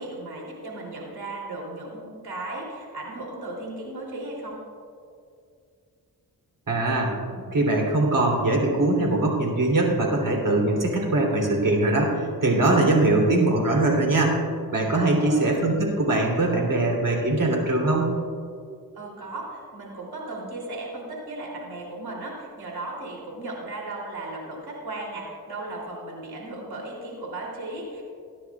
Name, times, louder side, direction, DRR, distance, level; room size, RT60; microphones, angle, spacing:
voice 1, 0.0-4.6 15.0-15.5 18.9-28.0, right 2 dB, 85° right, -2 dB, 3.2 m, -36 dB
voice 2, 6.7-14.4 14.7-18.1, right 2 dB, 55° right, 0 dB, 3.2 m, -22 dB
22.0 x 10.0 x 2.4 m, 2.4 s
cardioid pair, 60°, 37 cm